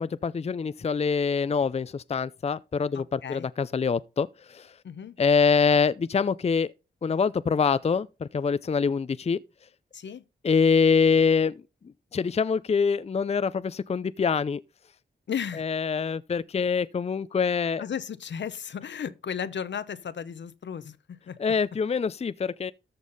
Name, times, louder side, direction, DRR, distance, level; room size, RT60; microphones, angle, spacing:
voice 1, 0.0-4.7 5.2-6.7 7.0-9.4 10.4-11.5 12.1-14.6 15.6-17.8 21.4-22.7, left 5 dB, 35° left, 0.5 m, -25 dB
voice 2, 2.9-3.5 4.8-5.2 9.9-10.2 15.3-15.7 17.5-17.6 17.8-21.4, left 8 dB, 75° left, 0.9 m, -35 dB
14.0 x 5.4 x 4.1 m
cardioid pair, 60°, 19 cm